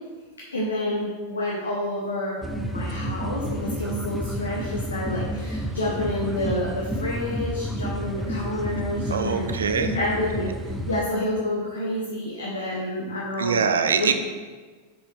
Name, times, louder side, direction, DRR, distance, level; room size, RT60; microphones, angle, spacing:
voice 1, 0.5-2.4 2.7-9.5 9.9-13.6 13.9-14.1, left 1 dB, 75° left, -5 dB, 1.1 m, -29 dB
sound 1, 2.4-11.0, equal, 5° right, 0.5 m, -30 dB
voice 2, 9.1-10.0 13.4-14.1, right 6 dB, 65° right, 8 dB, 0.5 m, -23 dB
6.6 x 5.3 x 3.4 m, 1.4 s
figure-of-eight pair, 90°, 0 cm